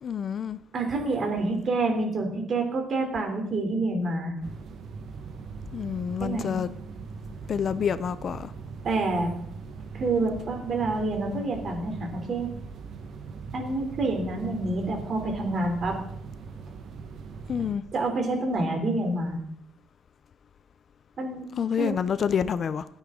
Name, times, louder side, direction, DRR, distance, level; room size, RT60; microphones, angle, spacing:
voice 1, 0.0-0.6 5.7-6.7 7.5-8.5 17.5-17.8 21.6-22.9, left 7 dB, 40° left, 14 dB, 0.5 m, -28 dB
voice 2, 0.7-4.3 6.2-6.6 8.8-9.3 9.9-12.5 13.5-16.0 17.9-19.4 21.2-21.5 21.8-21.9, right 2 dB, 40° right, 3 dB, 3.1 m, -27 dB
sound 1, 4.4-17.8, right 5 dB, 60° right, 1.3 m, -40 dB
27.5 x 9.3 x 3.8 m, 0.68 s
cardioid pair, 165°, 0 cm